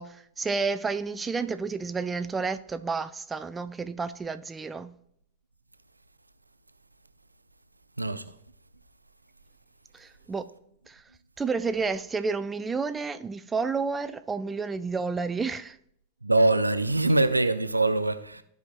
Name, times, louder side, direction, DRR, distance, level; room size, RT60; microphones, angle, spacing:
voice 1, 0.0-4.9 9.9-10.5 10.9-11.0 11.4-15.8, right 4 dB, 15° right, 0.3 m, -30 dB
voice 2, 16.2-18.4, right 2 dB, 85° right, 0.4 m, -23 dB
14.5 x 5.1 x 2.5 m
figure-of-eight pair, 90°, 0 cm